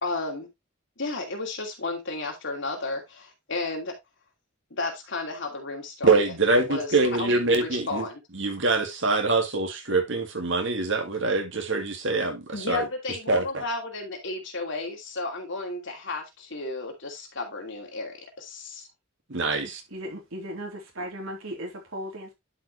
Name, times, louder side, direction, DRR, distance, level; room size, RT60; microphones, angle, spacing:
voice 1, 0.0-0.5 1.0-3.9 4.7-6.2 6.7-8.2 12.5-18.9 19.5-19.6, left 3 dB, 60° left, 2.6 m, -33 dB
voice 2, 6.0-8.0 8.3-12.9 13.3-13.6 19.3-19.8, right 3 dB, 60° right, 2.2 m, -24 dB
voice 3, 19.9-22.3, equal, 80° right, 3.6 m, -36 dB
11.0 x 5.2 x 3.1 m
head